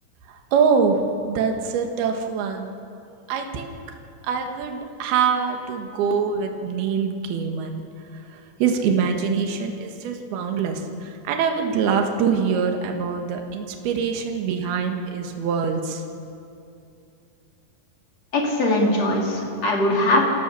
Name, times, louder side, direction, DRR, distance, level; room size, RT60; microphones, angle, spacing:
voice 1, 0.3-2.7 3.3-3.8 4.2-7.8 8.1-16.0, right 6 dB, 70° right, 4 dB, 3.4 m, -24 dB
voice 2, 18.3-20.2, left 1 dB, 45° left, -1 dB, 3.7 m, -21 dB
28.0 x 16.0 x 7.0 m, 2.6 s
omnidirectional pair, 4.7 m